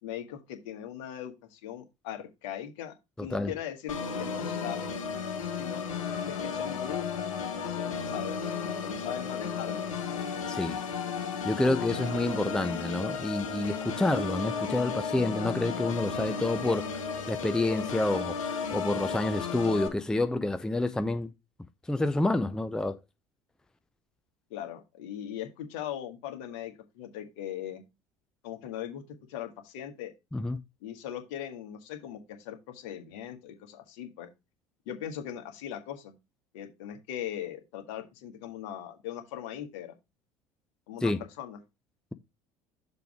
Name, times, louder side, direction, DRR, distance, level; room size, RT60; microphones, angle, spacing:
voice 1, 0.0-5.0 5.5-5.8 6.2-9.9 24.5-27.8 28.4-29.0 29.3-30.1 30.8-34.3 34.8-36.1 36.5-39.9 40.9-41.6, left 10 dB, 65° left, 1.5 m, -40 dB
Organ, 3.9-19.9, left 6 dB, 80° left, 1.2 m, -34 dB
voice 2, 10.5-10.8 11.4-18.3 18.7-21.3 21.9-23.0 30.3-30.6 41.0-41.2, left 2 dB, 5° left, 0.5 m, -28 dB
6.9 x 3.2 x 5.9 m
hypercardioid pair, 70°, 17 cm